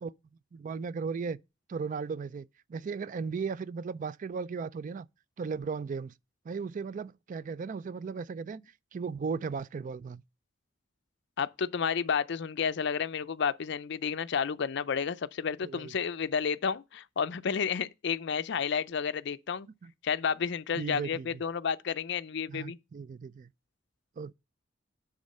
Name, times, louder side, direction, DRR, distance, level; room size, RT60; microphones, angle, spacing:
voice 1, 0.5-1.4 1.7-5.1 5.4-6.1 6.5-8.6 8.9-10.2 15.6-15.9 19.8-19.9 20.8-21.4 22.5-23.5 24.2-24.3, right 5 dB, 40° right, 0.3 m, -36 dB
voice 2, 11.4-19.7 20.0-22.8, left 6 dB, 65° left, 0.5 m, -31 dB
9.6 x 3.8 x 5.3 m
head